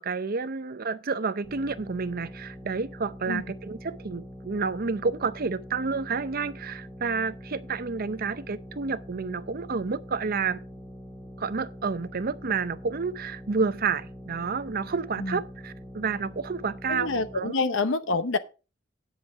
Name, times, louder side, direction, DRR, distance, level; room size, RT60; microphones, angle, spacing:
voice 1, 0.0-10.6 11.4-17.7, right 4 dB, 45° right, 0.6 m, -30 dB
sound 1, 1.4-17.4, equal, 10° left, 2.3 m, -44 dB
voice 2, 16.9-18.4, left 3 dB, 70° left, 0.9 m, -27 dB
9.4 x 7.7 x 4.6 m
head